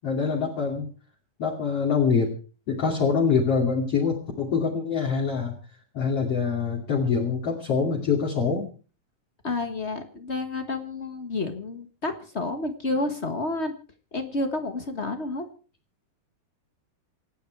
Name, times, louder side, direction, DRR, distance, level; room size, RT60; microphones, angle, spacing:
voice 1, 0.0-0.9 1.4-2.3 2.7-5.5 5.9-8.7, left 5 dB, 45° left, -1 dB, 3.5 m, -24 dB
voice 2, 9.4-13.7 14.1-15.4, left 2 dB, 65° left, 7 dB, 0.6 m, -30 dB
27.5 x 9.5 x 4.7 m, 0.37 s
omnidirectional pair, 3.9 m